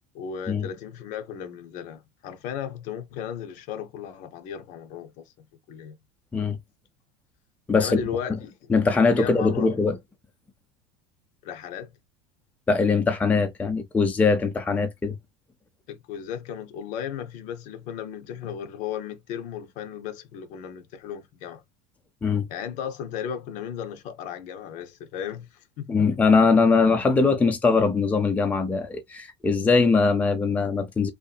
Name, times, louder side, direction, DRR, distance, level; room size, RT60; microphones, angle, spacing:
voice 1, 0.1-6.0 7.7-8.7 9.0-9.8 11.4-11.9 15.9-21.6 22.5-26.1, left 8 dB, 55° left, 0.6 m, -35 dB
voice 2, 7.7-8.0 8.7-10.0 12.7-15.2 22.2-22.5 25.9-31.1, left 4 dB, 10° left, 0.4 m, -21 dB
2.7 x 2.4 x 2.3 m
supercardioid pair, 130°, 15 cm